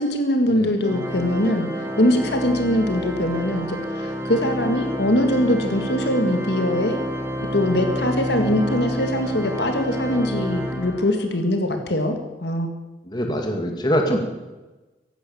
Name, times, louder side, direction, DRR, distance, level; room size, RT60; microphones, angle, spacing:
voice 1, 0.0-1.7 2.0-7.0 7.5-12.1 12.4-12.7, left 1 dB, 65° left, 5 dB, 2.0 m, -22 dB
Organ, 0.8-11.4, equal, 15° right, 1.5 m, -29 dB
voice 2, 13.0-14.2, equal, 25° left, 2 dB, 2.0 m, -23 dB
15.5 x 11.5 x 7.0 m, 1.1 s
head